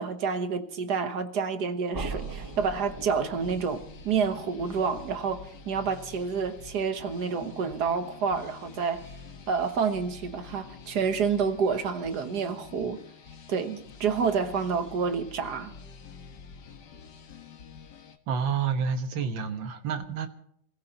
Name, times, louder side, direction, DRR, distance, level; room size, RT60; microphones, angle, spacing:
voice 1, 0.0-9.0 9.5-13.0 13.5-15.7, right 5 dB, 55° right, 1.7 m, -29 dB
sound 1, 1.9-7.8, right 4 dB, 20° right, 0.6 m, -42 dB
sound 2, 2.1-18.2, left 5 dB, 60° left, 1.9 m, -48 dB
voice 2, 18.3-20.3, right 6 dB, 70° right, 2.0 m, -29 dB
28.0 x 15.5 x 3.0 m
omnidirectional pair, 2.2 m